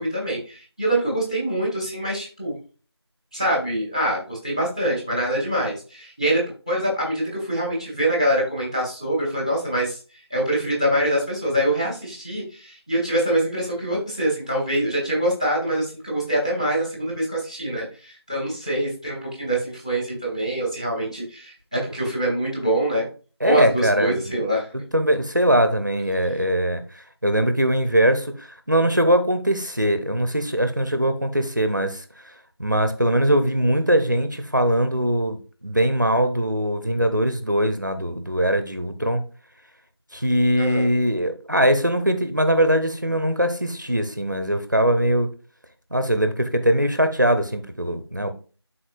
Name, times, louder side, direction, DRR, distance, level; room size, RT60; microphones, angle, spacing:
voice 1, 0.0-2.6 3.3-10.0 10.3-23.1 23.4-24.7 40.6-40.9, right 1 dB, 15° left, -2 dB, 1.5 m, -24 dB
voice 2, 23.4-24.3 24.9-32.3 32.6-39.2 40.1-45.3 45.9-48.3, right 1 dB, 45° right, 8 dB, 0.8 m, -21 dB
12.0 x 4.3 x 2.5 m, 0.36 s
figure-of-eight pair, 175°, 14 cm